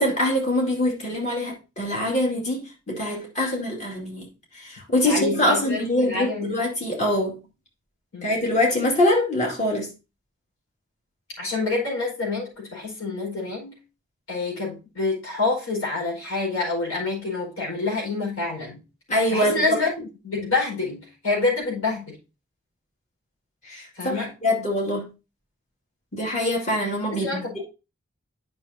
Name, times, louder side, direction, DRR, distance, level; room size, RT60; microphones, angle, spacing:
voice 1, 0.0-4.3 4.5-7.4 8.2-9.9 19.1-19.8 23.6-25.1 26.1-27.6, left 1 dB, 30° left, 2.3 m, -24 dB
voice 2, 5.0-6.6 8.1-8.3 11.4-13.8 14.3-18.8 19.3-19.9 20.2-22.2 23.9-24.3 27.1-27.6, left 3 dB, 75° left, 4.9 m, -27 dB
9.3 x 6.2 x 2.8 m
head